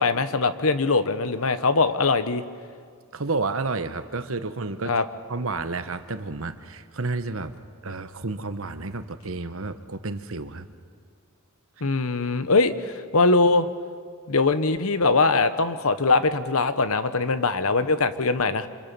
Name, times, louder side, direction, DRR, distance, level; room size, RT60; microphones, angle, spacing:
voice 1, 0.0-2.4 4.9-5.0 11.8-13.7 14.3-18.7, left 3 dB, 75° left, 11 dB, 1.2 m, -22 dB
voice 2, 3.1-4.9 5.3-7.6 7.8-10.7, right 3 dB, 65° right, 10 dB, 1.2 m, -30 dB
27.5 x 27.0 x 7.0 m, 2.1 s
head